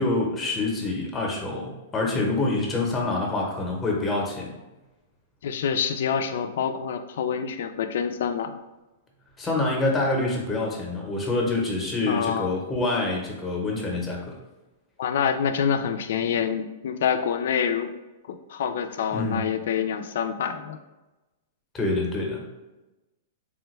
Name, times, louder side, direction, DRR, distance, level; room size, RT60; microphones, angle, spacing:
voice 1, 0.0-4.5 9.4-14.4 19.1-19.4 21.7-22.5, left 2 dB, 10° left, -1 dB, 0.8 m, -26 dB
voice 2, 5.4-8.6 12.0-12.5 15.0-17.9 18.3-20.8, left 7 dB, 70° left, 8 dB, 0.3 m, -26 dB
3.4 x 2.2 x 3.1 m, 1.1 s
hypercardioid pair, 140°, 0 cm